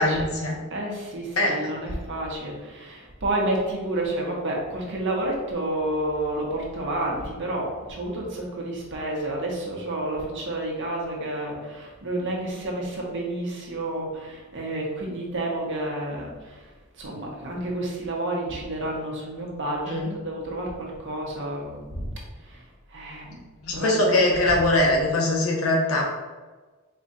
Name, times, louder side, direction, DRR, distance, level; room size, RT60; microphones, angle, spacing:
voice 1, 0.0-0.6 1.4-1.7 19.9-20.1 23.6-26.0, left 1 dB, 75° left, -1 dB, 1.0 m, -22 dB
voice 2, 0.7-16.5 17.0-22.1 22.5-22.6 22.9-23.4 23.7-24.1, right 1 dB, 60° right, -2 dB, 1.0 m, -30 dB
4.3 x 2.4 x 4.1 m, 1.3 s
head